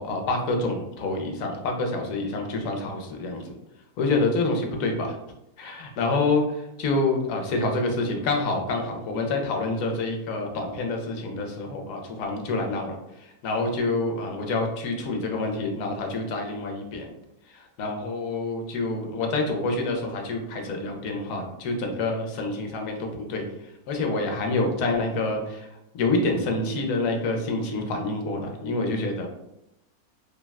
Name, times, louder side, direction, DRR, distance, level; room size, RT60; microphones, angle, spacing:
voice 1, 0.0-3.5 4.0-5.2 5.6-17.1 17.5-23.4 23.9-29.3, left 2 dB, 70° left, 2 dB, 0.9 m, -27 dB
3.3 x 2.2 x 2.2 m, 0.85 s
omnidirectional pair, 1.6 m